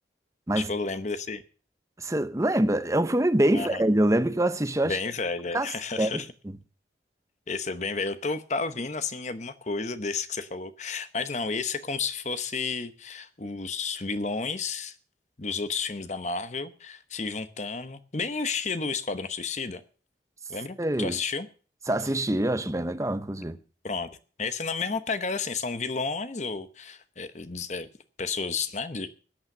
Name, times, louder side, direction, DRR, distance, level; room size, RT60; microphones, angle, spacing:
voice 1, 0.6-1.4 3.5-3.8 4.8-6.3 7.5-14.9 15.4-19.8 20.5-21.5 23.8-24.1 24.4-27.9 28.2-29.1, left 4 dB, 40° left, 0.9 m, -31 dB
voice 2, 2.0-5.0 5.5-5.7 6.0-6.5 20.8-21.2 21.9-23.6, right 1 dB, 15° right, 0.8 m, -25 dB
13.5 x 8.8 x 6.6 m
head